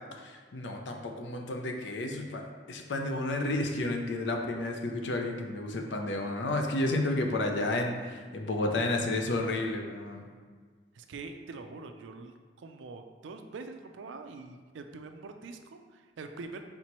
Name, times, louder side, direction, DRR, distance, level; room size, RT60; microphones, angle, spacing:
voice 1, 0.1-10.3, left 2 dB, 75° left, 3 dB, 0.5 m, -31 dB
voice 2, 10.9-16.6, right 3 dB, 90° right, 6 dB, 0.4 m, -44 dB
4.4 x 4.0 x 3.0 m, 1.5 s
head